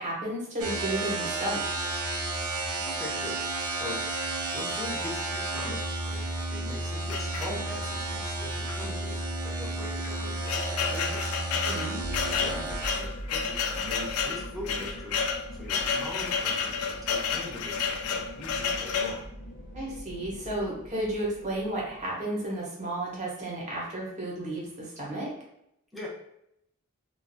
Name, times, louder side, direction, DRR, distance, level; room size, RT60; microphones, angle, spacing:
voice 1, 0.0-1.7 11.6-12.0 19.7-25.3, right 1 dB, 35° right, -4 dB, 0.9 m, -33 dB
sound 1, 0.6-13.0, right 2 dB, 90° right, 0.5 m, -32 dB
voice 2, 2.8-3.4 3.7-4.0 4.5-11.2 12.2-15.2 15.5-19.2 25.9-26.1, left 1 dB, ahead, -6 dB, 0.7 m, -41 dB
sound 2, 7.1-8.0 8.7-8.8 9.1-9.2 9.9-19.2, left 6 dB, 75° left, 0.3 m, -31 dB
sound 3, 12.0-22.0, equal, 50° left, 0.7 m, -42 dB
2.5 x 2.3 x 2.6 m, 0.79 s
head